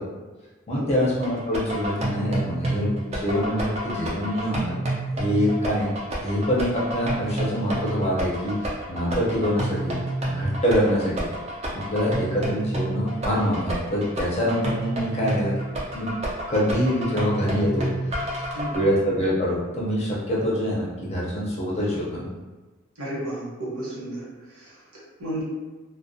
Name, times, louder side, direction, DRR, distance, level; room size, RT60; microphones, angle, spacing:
voice 1, 0.7-4.9 5.2-5.9 6.2-9.9 10.3-11.3 11.7-15.5 15.9-16.1 16.5-18.2 18.7-22.3, equal, 30° left, -5 dB, 0.5 m, -25 dB
sound 1, 1.2-18.8, right 1 dB, 30° right, 0.4 m, -29 dB
voice 2, 18.5-18.9 23.0-25.4, right 1 dB, 85° right, -7 dB, 1.0 m, -33 dB
2.3 x 2.1 x 2.6 m, 1.2 s
head